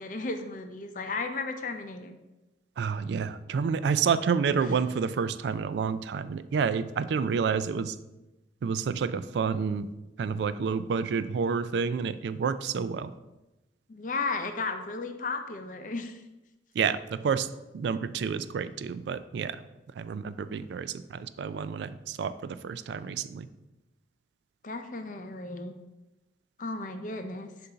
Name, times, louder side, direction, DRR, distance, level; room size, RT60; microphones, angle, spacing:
voice 1, 0.0-2.2 13.9-16.2 24.6-25.7 26.6-27.5, left 3 dB, 45° left, 7 dB, 0.5 m, -34 dB
voice 2, 2.8-8.0 8.6-9.9 10.2-13.1 16.7-17.5 17.7-19.6 20.0-23.5, right 6 dB, 70° right, 14 dB, 0.3 m, -29 dB
6.7 x 2.6 x 5.6 m, 0.99 s
head